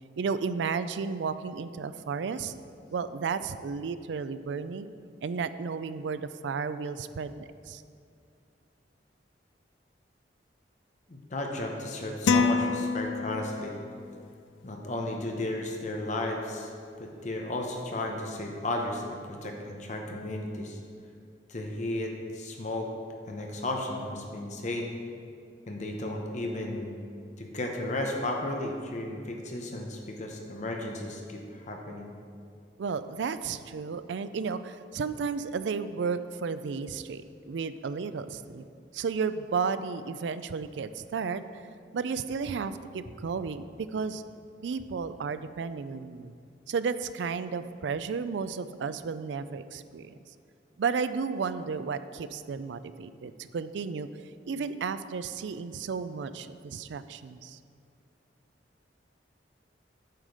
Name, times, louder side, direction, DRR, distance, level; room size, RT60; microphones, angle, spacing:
voice 1, 0.2-2.5 2.9-4.9 5.2-7.8 32.8-38.6 38.9-41.6 41.9-44.2 44.6-46.3 46.7-50.1 50.8-54.1 54.5-57.6, right 5 dB, 75° right, 13 dB, 0.4 m, -33 dB
voice 2, 11.1-13.8 14.6-16.7 17.0-20.8 21.5-22.9 23.3-24.9 25.7-26.9 27.4-32.1, left 1 dB, 40° left, 1 dB, 0.8 m, -34 dB
sound 1, 12.3-13.8, left 5 dB, 90° left, 0.4 m, -26 dB
9.0 x 5.0 x 6.3 m, 2.4 s
head